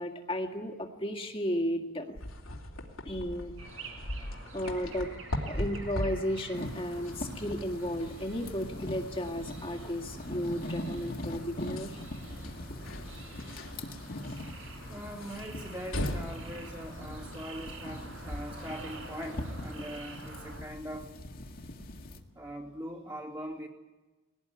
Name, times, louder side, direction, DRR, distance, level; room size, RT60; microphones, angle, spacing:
voice 1, 0.0-2.2 3.1-3.5 4.2-5.1 5.5-12.0, equal, 25° left, 4 dB, 2.0 m, -34 dB
sound 1, 2.1-19.5, left 1 dB, 85° left, 2.9 m, -41 dB
sound 2, 3.6-20.6, right 2 dB, 75° right, 5.4 m, -48 dB
sound 3, 6.5-22.2, left 1 dB, 45° left, 1.8 m, -42 dB
voice 2, 14.9-21.1 22.3-23.7, equal, 25° right, -3 dB, 2.8 m, -41 dB
21.5 x 18.0 x 9.7 m, 1.2 s
head